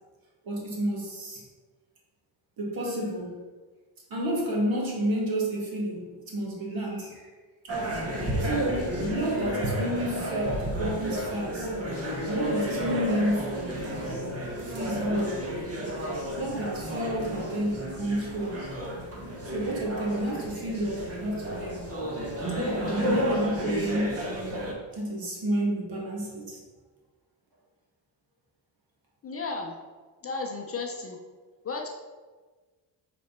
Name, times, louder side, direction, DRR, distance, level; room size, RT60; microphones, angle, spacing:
voice 1, 0.4-1.4 2.6-3.4 4.1-7.3 8.4-11.7 12.3-13.9 14.6-15.4 16.4-18.6 19.4-21.9 22.6-24.2 24.9-26.6, right 1 dB, 50° right, -2 dB, 2.0 m, -30 dB
sound 1, 7.7-24.7, equal, 35° right, 1.3 m, -32 dB
voice 2, 29.2-29.7 30.2-31.2 31.6-31.9, left 3 dB, 30° left, 2 dB, 0.6 m, -34 dB
6.2 x 4.1 x 5.8 m, 1.4 s
cardioid pair, 175°, 44 cm